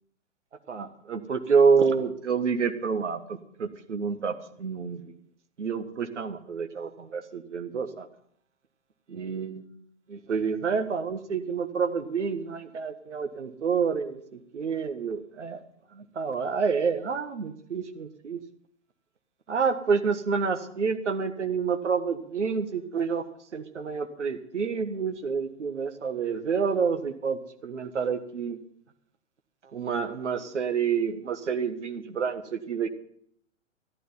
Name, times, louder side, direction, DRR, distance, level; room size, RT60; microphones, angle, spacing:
voice 1, 0.7-5.0 5.6-8.1 9.1-9.7 10.1-15.6 15.9-18.4 19.5-23.2 23.5-28.6 29.7-32.9, right 5 dB, 65° right, 8 dB, 1.6 m, -28 dB
13.0 x 12.0 x 5.9 m, 0.65 s
figure-of-eight pair, 115°, 38 cm